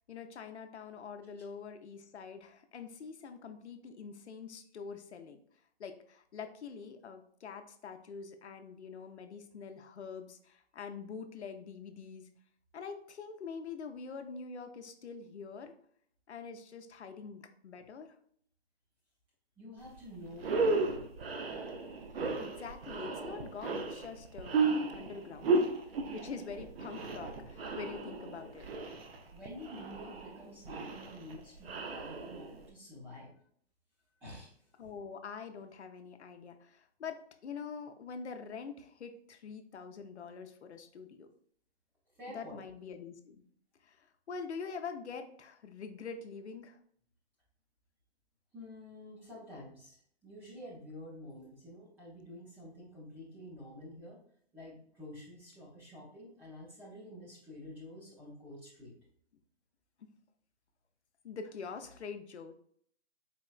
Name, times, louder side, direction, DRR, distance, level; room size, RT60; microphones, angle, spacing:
voice 1, 0.1-5.4 5.8-12.3 12.7-15.7 16.3-18.2 22.4-25.6 26.1-28.7 34.8-41.3 42.3-43.4 43.8-46.8 61.2-62.5, left 5 dB, 85° left, 6 dB, 0.6 m, -45 dB
voice 2, 19.6-21.1 29.3-33.4 34.2-34.5 42.1-42.6 48.5-54.2 54.5-58.9, left 1 dB, 5° right, -7 dB, 0.5 m, -49 dB
sound 1, 19.9-20.0 20.3-32.7, right 3 dB, 60° right, 0.7 m, -34 dB
4.2 x 3.1 x 2.3 m, 0.63 s
hypercardioid pair, 140°, 33 cm